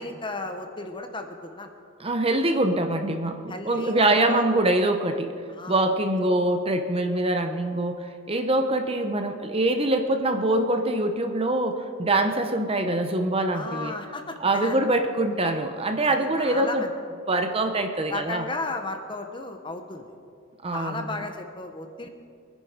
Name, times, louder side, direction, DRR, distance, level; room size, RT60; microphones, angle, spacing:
voice 1, 0.0-1.7 2.0-2.1 3.5-4.4 5.5-5.9 13.5-14.8 16.1-16.9 18.1-20.1 20.7-22.1, left 3 dB, 25° left, 5 dB, 1.1 m, -34 dB
voice 2, 2.0-5.3 5.7-13.9 14.4-16.8 17.3-18.4 20.6-21.2, right 1 dB, 30° right, 6 dB, 0.9 m, -24 dB
23.5 x 10.5 x 5.2 m, 2.3 s
head